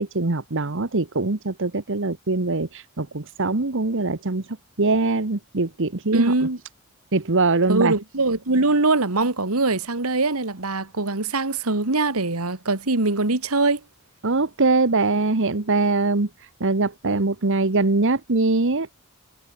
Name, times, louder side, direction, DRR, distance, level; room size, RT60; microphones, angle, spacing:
voice 1, 0.0-4.5 4.8-6.3 7.1-7.9 14.2-18.9, right 3 dB, 60° right, 1.3 m, -22 dB
voice 2, 6.1-6.6 7.7-13.8, right 3 dB, 85° right, 2.2 m, -22 dB
head